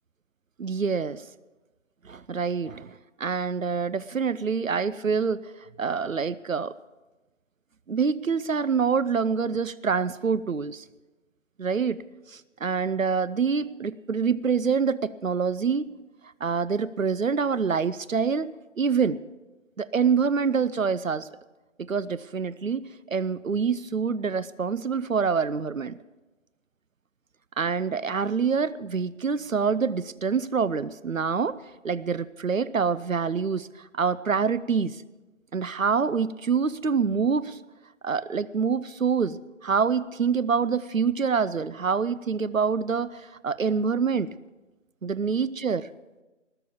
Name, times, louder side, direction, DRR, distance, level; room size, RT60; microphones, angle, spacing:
voice 1, 0.6-1.2 2.0-6.7 7.9-10.8 11.6-12.0 12.3-15.9 16.4-18.5 18.8-19.2 19.8-21.3 21.8-26.0 27.6-31.6 31.8-35.0 35.5-37.6 38.0-44.3 45.0-45.8, right 5 dB, 85° right, 16 dB, 0.6 m, -26 dB
20.0 x 6.9 x 7.1 m, 1.1 s
figure-of-eight pair, 165°, 39 cm